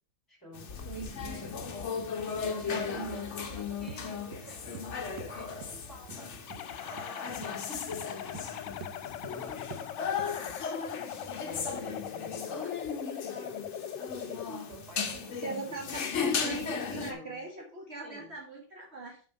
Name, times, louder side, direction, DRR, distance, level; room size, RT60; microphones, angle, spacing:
voice 1, 0.3-1.3 2.2-10.6 11.4-13.2 14.2-17.5 18.0-18.3, equal, 10° left, -1 dB, 3.7 m, -51 dB
sound 1, 0.5-17.1, left 6 dB, 45° left, 1.0 m, -36 dB
voice 2, 0.9-1.6 2.4-3.2 14.5-14.7 15.4-19.2, right 3 dB, 35° right, 1 dB, 1.4 m, -41 dB
sound 2, 3.9-4.0 4.3-4.9 5.2-5.4 5.6-5.8 6.1-6.2 6.5-6.6 7.0-7.1 7.4-7.6 7.9-8.5 8.8-9.0 9.2-9.4 9.7-9.9 10.2-10.3, right 7 dB, 80° right, 1.4 m, -45 dB
sound 3, 6.5-14.5, left 9 dB, 75° left, 1.4 m, -41 dB
7.2 x 5.4 x 5.2 m, 0.40 s
omnidirectional pair, 2.1 m